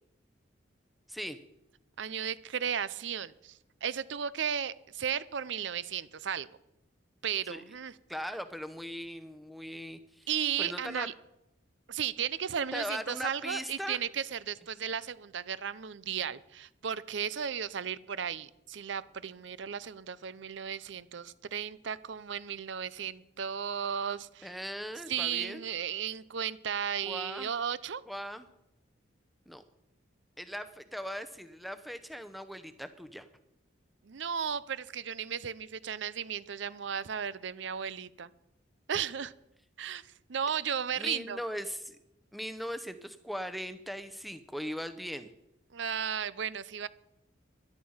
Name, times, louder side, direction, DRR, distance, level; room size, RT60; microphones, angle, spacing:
voice 1, 1.1-1.4 7.5-7.6 8.1-10.3 10.6-11.1 12.7-14.0 24.4-25.7 27.0-27.5 28.1-28.5 29.5-29.6 30.4-33.3 40.9-42.0 42.3-45.3, equal, ahead, 10 dB, 0.7 m, -39 dB
voice 2, 2.0-6.5 7.2-7.9 10.3-11.1 11.9-24.5 25.1-28.0 34.1-38.3 38.9-39.3 39.8-40.0 40.3-41.4 45.7-46.9, right 8 dB, 70° right, 18 dB, 0.6 m, -35 dB
13.5 x 11.5 x 5.6 m, 0.86 s
head